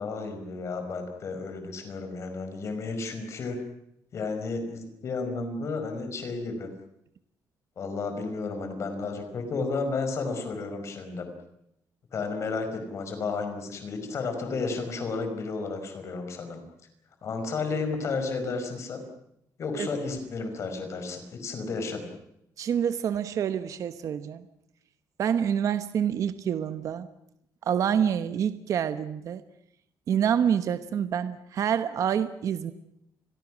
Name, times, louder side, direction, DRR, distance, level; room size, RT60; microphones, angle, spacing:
voice 1, 0.0-3.6 4.1-6.7 7.8-11.3 12.1-16.6 17.2-19.0 19.6-22.1, left 4 dB, 40° left, 6 dB, 4.9 m, -32 dB
voice 2, 22.6-24.5 25.2-27.1 27.6-29.4 30.1-32.7, right 8 dB, 50° right, 11 dB, 1.0 m, -27 dB
29.5 x 22.5 x 6.2 m, 0.79 s
cardioid pair, 175°, 7 cm